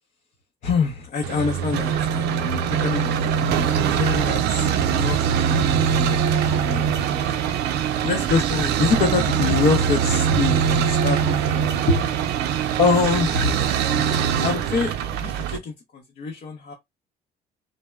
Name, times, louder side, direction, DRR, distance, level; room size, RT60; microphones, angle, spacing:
voice 1, 0.6-6.2 6.5-7.2 8.0-12.0 12.8-13.8 14.4-14.9 15.2-16.7, left 4 dB, 50° left, 0.6 m, -25 dB
sound 1, 1.2-15.6, right 8 dB, 80° right, 0.5 m, -22 dB
3.2 x 2.0 x 2.2 m
cardioid pair, 110°, 17 cm